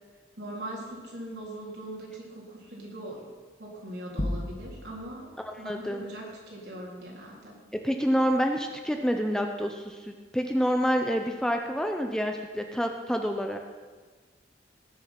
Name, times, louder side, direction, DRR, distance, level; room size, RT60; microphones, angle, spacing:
voice 1, 0.4-3.2 3.6-5.3 5.6-7.6, right 1 dB, 70° right, -3 dB, 3.8 m, -41 dB
sound 1, 4.2-5.1, left 1 dB, 30° left, 1.1 m, -32 dB
voice 2, 5.5-6.0 7.8-13.6, equal, 5° left, 4 dB, 0.7 m, -28 dB
19.5 x 7.0 x 6.0 m, 1.4 s
head